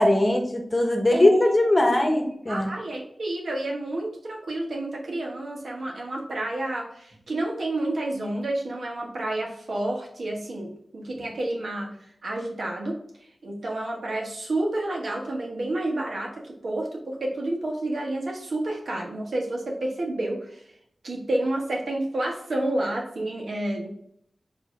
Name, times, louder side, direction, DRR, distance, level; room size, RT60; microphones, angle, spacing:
voice 1, 0.0-2.7, left 1 dB, 30° left, 3 dB, 0.9 m, -20 dB
voice 2, 1.1-1.6 2.0-2.2 2.5-11.9 12.2-13.0 13.4-20.6 21.0-23.9, right 1 dB, 80° right, -1 dB, 1.1 m, -30 dB
4.8 x 2.8 x 4.0 m, 0.71 s
cardioid pair, 55°, 0 cm